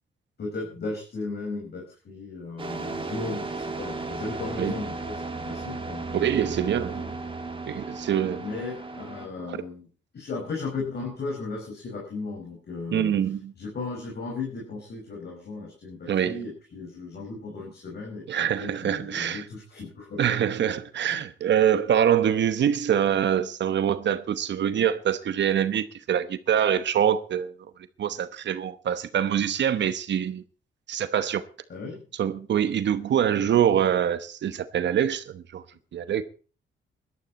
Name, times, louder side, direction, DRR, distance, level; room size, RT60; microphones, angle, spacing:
voice 1, 0.4-7.1 8.3-9.9 10.1-13.2 13.6-20.4 21.1-21.2 31.7-32.0, left 3 dB, 55° left, 5.3 m, -36 dB
sound 1, 2.6-9.3, right 3 dB, 25° right, 2.1 m, -35 dB
voice 2, 6.1-7.1 7.7-8.4 9.5-9.6 12.9-13.5 16.1-16.4 18.3-19.5 20.2-27.5 28.0-30.4 30.9-31.4 32.2-35.6 35.9-36.2, right 9 dB, 65° right, 1.0 m, -24 dB
18.0 x 12.5 x 4.2 m
cardioid pair, 100°, 20 cm